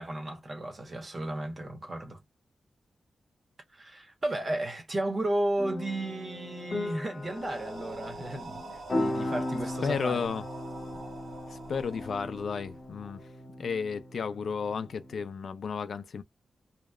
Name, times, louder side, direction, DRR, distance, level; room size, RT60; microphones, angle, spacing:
voice 1, 0.0-2.2 3.7-10.3, right 1 dB, 35° right, 0.9 m, -34 dB
sound 1, 5.6-15.2, left 1 dB, 50° left, 0.9 m, -37 dB
sound 2, 7.2-13.1, right 3 dB, 70° right, 1.1 m, -46 dB
voice 2, 9.8-10.4 11.5-13.3 13.6-16.2, left 6 dB, 65° left, 0.4 m, -33 dB
2.7 x 2.1 x 2.2 m
wide cardioid pair, 130°, 0 cm